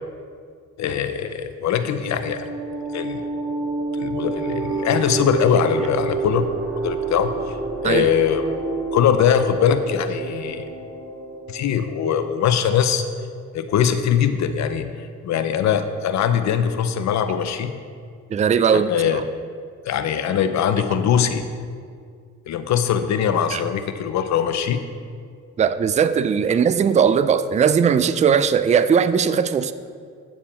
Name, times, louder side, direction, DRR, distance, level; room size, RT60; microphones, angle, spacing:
voice 1, 0.8-2.5 2.9-3.2 3.9-6.5 6.8-7.6 7.8-8.5 8.9-10.7 11.5-13.0 13.5-14.9 15.2-17.7 18.7-19.2 19.9-21.5 22.5-24.8, left 8 dB, 65° left, 10 dB, 0.7 m, -21 dB
sound 1, 1.8-12.0, right 4 dB, 45° right, 1.3 m, -29 dB
voice 2, 18.3-19.2 23.5-23.6 25.6-29.7, right 7 dB, 25° right, 13 dB, 0.3 m, -19 dB
8.8 x 7.4 x 4.3 m, 2.1 s
cardioid pair, 90°, 30 cm